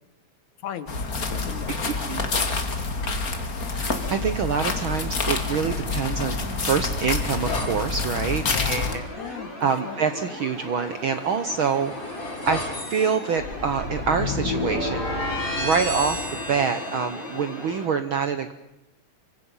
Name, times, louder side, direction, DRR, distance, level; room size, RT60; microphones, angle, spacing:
voice 1, 0.6-1.9 8.5-9.5 9.8-10.0, left 9 dB, 75° left, 12 dB, 2.7 m, -36 dB
sound 1, 0.9-9.0, left 3 dB, 35° left, 2.1 m, -27 dB
voice 2, 1.9-2.3 3.6-6.3 6.6-15.1 15.6-18.5, right 6 dB, 65° right, 10 dB, 1.3 m, -26 dB
sound 2, 3.0-3.4 5.3-7.7 11.2-17.6, left 2 dB, 50° left, 7.9 m, -32 dB
sound 3, 8.6-17.9, left 1 dB, 15° left, 5.6 m, -38 dB
26.5 x 24.5 x 5.6 m, 0.93 s
omnidirectional pair, 3.4 m